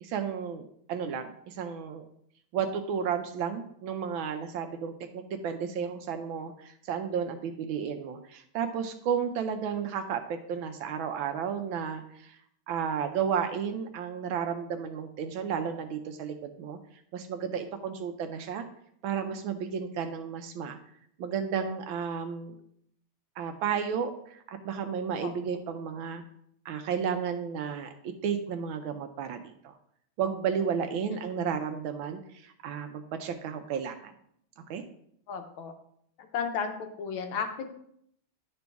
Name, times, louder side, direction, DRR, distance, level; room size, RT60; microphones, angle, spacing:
voice 1, 0.0-2.0 2.5-12.4 12.7-16.8 17.1-18.6 19.0-20.8 21.2-22.5 23.4-26.2 26.6-29.7 30.2-34.1 34.7-34.8, right 7 dB, 75° right, 7 dB, 1.3 m, -33 dB
voice 2, 35.3-35.7 36.2-37.7, left 6 dB, 70° left, 5 dB, 1.5 m, -33 dB
10.5 x 4.0 x 3.5 m, 0.69 s
omnidirectional pair, 2.4 m